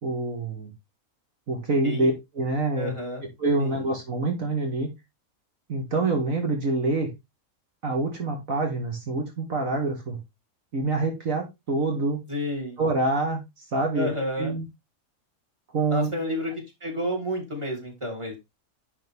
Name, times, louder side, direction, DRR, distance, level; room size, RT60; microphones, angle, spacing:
voice 1, 0.0-0.7 1.5-2.9 3.4-4.9 5.7-7.1 7.8-10.2 10.7-12.2 12.8-14.1 14.4-14.6 15.7-16.1, right 2 dB, 65° right, 2 dB, 2.1 m, -26 dB
voice 2, 2.8-3.2 3.6-3.8 12.3-12.8 13.9-14.5 15.9-18.4, left 1 dB, 20° right, 2 dB, 2.9 m, -30 dB
10.0 x 4.3 x 3.5 m, 0.22 s
omnidirectional pair, 1.5 m